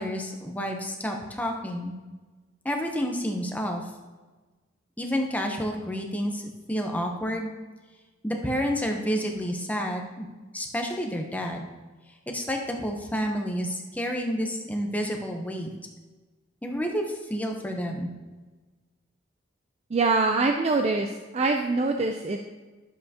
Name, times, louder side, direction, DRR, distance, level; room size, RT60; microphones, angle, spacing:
voice 1, 0.0-2.0 2.6-3.8 5.0-6.4 6.7-7.5 8.2-10.3 10.5-11.7 12.3-15.7 16.6-17.0 17.3-18.1, equal, 10° left, 2 dB, 0.7 m, -29 dB
voice 2, 19.9-22.4, right 3 dB, 30° right, 4 dB, 0.3 m, -24 dB
11.0 x 7.5 x 2.8 m, 1.3 s
head